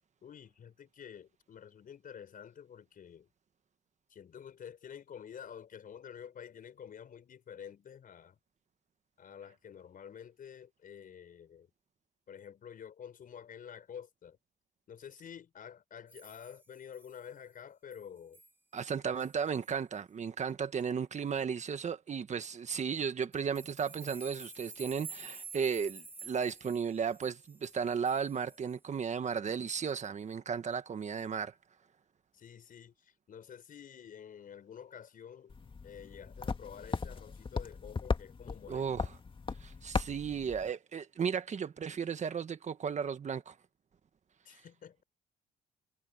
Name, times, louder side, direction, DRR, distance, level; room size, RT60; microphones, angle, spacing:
voice 1, 0.2-3.3 4.1-8.4 9.2-11.7 12.3-14.4 14.9-18.4 32.3-35.5 35.8-39.0 44.4-45.0, left 8 dB, 50° left, 5.7 m, -49 dB
sound 1, 16.1-17.3 17.9-18.0 18.3-18.5 18.8-18.9 19.2-19.4 19.6-19.7 23.3-28.8, right 4 dB, 10° right, 1.9 m, -50 dB
voice 2, 18.7-31.5 38.7-39.1 39.6-43.6, right 6 dB, 40° right, 1.6 m, -35 dB
sound 2, 35.5-40.7, left 4 dB, 30° left, 2.0 m, -37 dB
cardioid pair, 100°, 18 cm